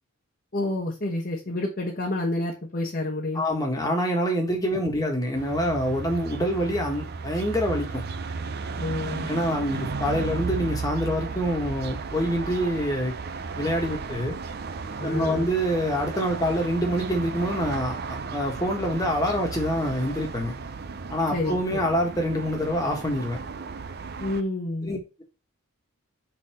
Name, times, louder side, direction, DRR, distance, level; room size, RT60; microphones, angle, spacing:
voice 1, 0.5-3.4 4.7-4.8 8.8-9.3 15.0-15.5 21.3-21.8 24.2-24.9, left 2 dB, 40° left, -2 dB, 1.1 m, -29 dB
voice 2, 3.3-8.0 9.3-13.1 13.6-14.4 15.0-18.0 18.3-20.5 21.1-23.4 24.8-25.2, equal, 15° left, 1 dB, 1.5 m, -26 dB
sound 1, 5.3-24.4, right 4 dB, 45° right, 0.5 m, -34 dB
5.5 x 4.1 x 4.4 m, 0.29 s
head